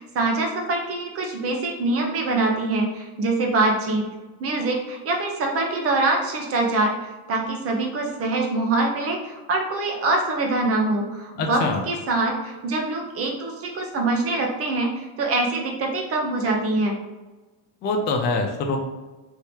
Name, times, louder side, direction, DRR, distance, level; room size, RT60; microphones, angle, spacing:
voice 1, 0.0-4.1 4.4-7.0 7.3-17.0, right 2 dB, 30° right, 1 dB, 0.7 m, -24 dB
voice 2, 11.4-11.8 17.8-18.8, left 3 dB, 25° left, 3 dB, 0.3 m, -24 dB
3.5 x 2.8 x 4.6 m, 1.2 s
cardioid pair, 150°, 48 cm